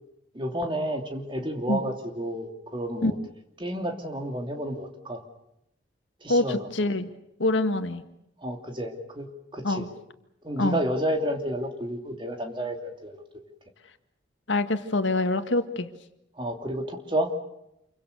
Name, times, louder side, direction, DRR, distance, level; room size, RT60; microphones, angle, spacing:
voice 1, 0.3-3.2 3.6-5.2 6.2-6.7 8.4-9.3 9.5-9.9 10.4-13.2 16.4-17.3, right 1 dB, 25° right, 4 dB, 2.8 m, -30 dB
voice 2, 6.3-7.1 7.4-8.0 9.6-9.9 10.6-10.8 14.5-15.9, left 2 dB, 80° left, 8 dB, 1.8 m, -25 dB
28.0 x 23.5 x 6.7 m, 0.82 s
head